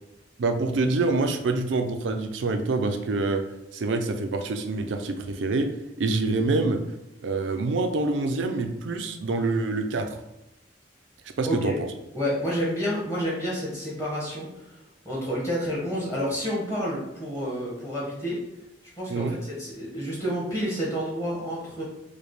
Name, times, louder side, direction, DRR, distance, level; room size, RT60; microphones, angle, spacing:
voice 1, 0.4-3.4 3.7-5.7 6.0-6.8 7.2-10.2 11.4-11.7 19.1-19.3, right 3 dB, 75° right, 6 dB, 0.5 m, -26 dB
voice 2, 11.4-11.8 12.1-14.8 15.0-18.4 18.9-21.8, equal, 15° left, -6 dB, 1.3 m, -29 dB
5.0 x 2.2 x 3.1 m, 0.90 s
head